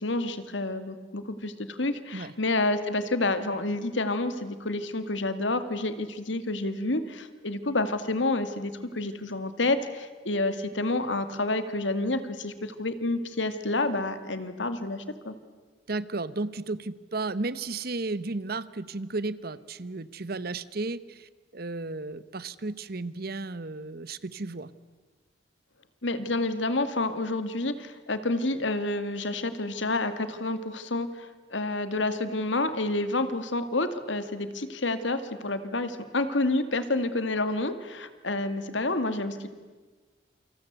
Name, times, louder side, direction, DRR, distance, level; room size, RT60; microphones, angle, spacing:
voice 1, 0.0-15.4 26.0-39.5, left 2 dB, 85° left, 10 dB, 2.2 m, -29 dB
voice 2, 15.9-24.7, right 3 dB, 55° right, 16 dB, 1.0 m, -34 dB
28.0 x 26.0 x 8.1 m, 1.3 s
head